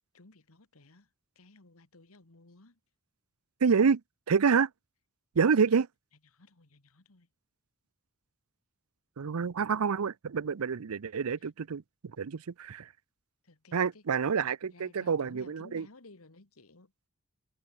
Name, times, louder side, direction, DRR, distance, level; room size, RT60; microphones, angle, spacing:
voice 1, 0.1-1.1 1.4-2.8 5.4-5.5 6.3-7.3 11.4-11.5 13.4-14.0 14.7-16.9, left 2 dB, 75° left, 1.9 m, -56 dB
voice 2, 3.6-4.0 4.3-4.7 5.4-5.9 9.2-11.8 12.2-12.9 13.7-15.9, right 6 dB, 90° right, 0.6 m, -27 dB
head